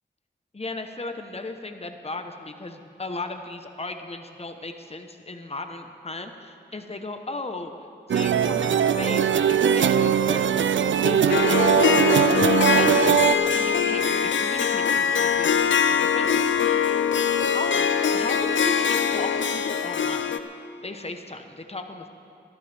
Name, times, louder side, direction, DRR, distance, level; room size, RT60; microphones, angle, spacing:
voice 1, 0.5-7.7 8.1-10.6 11.0-13.2 13.5-16.8 17.5-20.4 20.8-22.1, left 2 dB, 35° left, 6 dB, 1.0 m, -36 dB
sound 1, 8.1-13.3, right 8 dB, 85° right, 0.4 m, -20 dB
Harp, 11.3-20.4, left 7 dB, 90° left, 0.6 m, -22 dB
24.0 x 11.5 x 3.5 m, 2.5 s
cardioid pair, 45°, 19 cm